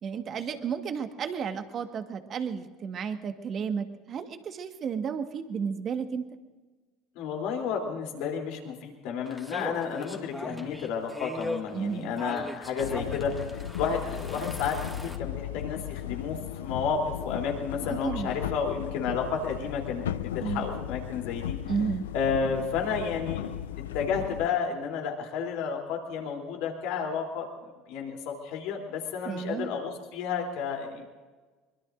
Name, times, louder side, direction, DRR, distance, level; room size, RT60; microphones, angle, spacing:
voice 1, 0.0-6.2 11.7-12.2 17.9-18.3 20.4-20.6 21.7-22.1 29.2-29.8, right 6 dB, 45° right, 7 dB, 1.5 m, -32 dB
voice 2, 7.1-21.5 22.1-23.4 23.9-27.5 27.9-31.1, left 6 dB, 70° left, 1 dB, 3.2 m, -31 dB
sound 1, 9.3-15.2, left 1 dB, 5° left, 1.9 m, -39 dB
sound 2, 12.8-24.5, left 11 dB, 90° left, 0.4 m, -36 dB
23.5 x 22.0 x 2.6 m, 1.3 s
hypercardioid pair, 80°, 0 cm